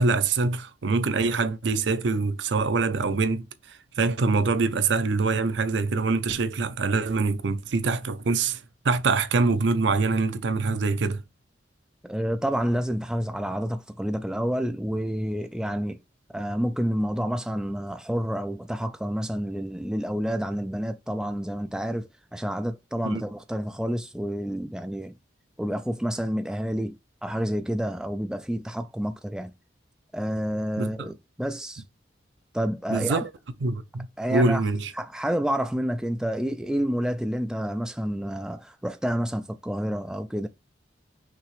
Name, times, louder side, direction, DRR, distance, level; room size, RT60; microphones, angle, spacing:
voice 1, 0.0-11.2 23.0-23.2 30.8-31.1 32.9-33.3 33.6-34.9, right 3 dB, 75° right, 0.5 m, -24 dB
voice 2, 12.0-16.0 16.3-25.1 25.6-27.0 27.2-29.5 30.1-31.8 32.5-33.2 34.2-34.6 34.9-40.5, equal, 5° right, 0.3 m, -29 dB
5.9 x 2.8 x 3.1 m
head